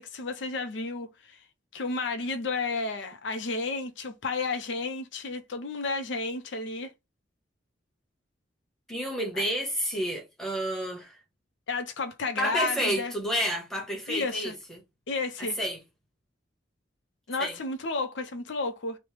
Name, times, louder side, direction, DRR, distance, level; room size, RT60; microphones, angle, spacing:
voice 1, 0.0-1.4 1.7-6.9 9.4-9.5 11.7-13.1 14.1-14.6 15.1-15.6 17.3-19.0, left 3 dB, 75° left, 0.5 m, -32 dB
voice 2, 8.9-11.2 12.4-14.8 15.4-15.8 17.4-17.6, equal, ahead, 1.0 m, -30 dB
3.1 x 2.0 x 3.1 m
head